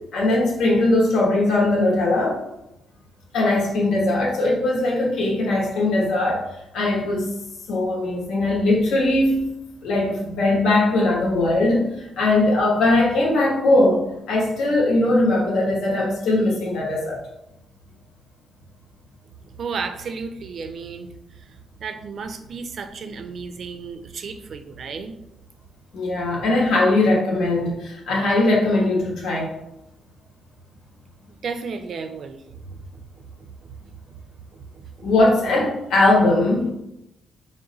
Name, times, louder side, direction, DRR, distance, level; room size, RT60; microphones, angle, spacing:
voice 1, 0.1-2.4 3.3-6.4 6.7-7.3 7.7-9.5 9.8-17.2 25.9-29.5 35.0-36.7, left 2 dB, 80° left, -2 dB, 0.9 m, -20 dB
voice 2, 19.6-21.1 21.8-25.1 31.4-32.5 34.8-34.9, right 5 dB, 60° right, 8 dB, 0.4 m, -33 dB
4.0 x 2.2 x 3.7 m, 0.86 s
cardioid pair, 85°, 0 cm